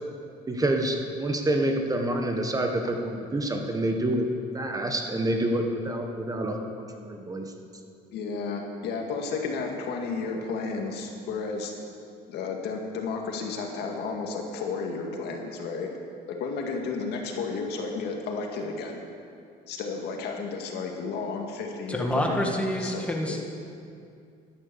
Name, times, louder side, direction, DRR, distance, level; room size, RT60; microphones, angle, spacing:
voice 1, 0.5-4.3 4.5-7.5, right 1 dB, 20° right, 4 dB, 1.4 m, -27 dB
voice 2, 8.1-11.7 12.3-15.9 16.3-19.0 19.7-23.2, left 4 dB, 80° left, 2 dB, 2.0 m, -32 dB
voice 3, 21.9-23.4, equal, 5° left, 1 dB, 1.9 m, -27 dB
12.0 x 11.5 x 7.0 m, 2.4 s
cardioid pair, 110°, 17 cm